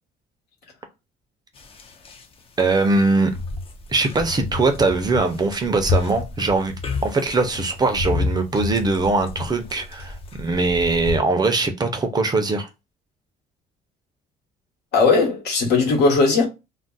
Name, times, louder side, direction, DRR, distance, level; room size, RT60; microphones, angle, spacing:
sound 1, 1.6-2.2 2.6-11.2, left 3 dB, 35° left, 0.5 m, -30 dB
voice 1, 2.6-3.3 3.9-6.7 7.0-12.7, right 3 dB, 25° right, 0.5 m, -21 dB
voice 2, 14.9-16.4, left 4 dB, 75° left, 1.2 m, -18 dB
2.5 x 2.0 x 3.8 m
cardioid pair, 110°, 17 cm